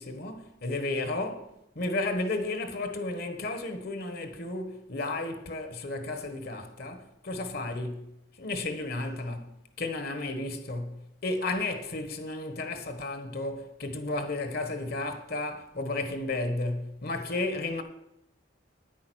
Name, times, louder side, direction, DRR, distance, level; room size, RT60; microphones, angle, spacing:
voice 1, 0.0-8.1 8.4-17.8, left 2 dB, 55° left, 1.3 m, -33 dB
9.7 x 8.9 x 6.2 m
head